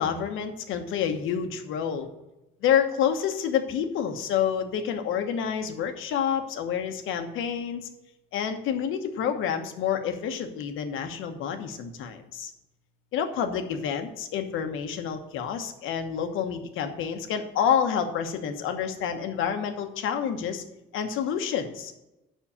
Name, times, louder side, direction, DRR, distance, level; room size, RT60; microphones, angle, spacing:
voice 1, 0.0-2.1 2.6-7.9 8.3-12.5 13.1-20.6 20.9-21.9, left 8 dB, 75° left, 6 dB, 1.2 m, -28 dB
7.3 x 5.7 x 7.1 m, 0.95 s
cardioid pair, 85°, 21 cm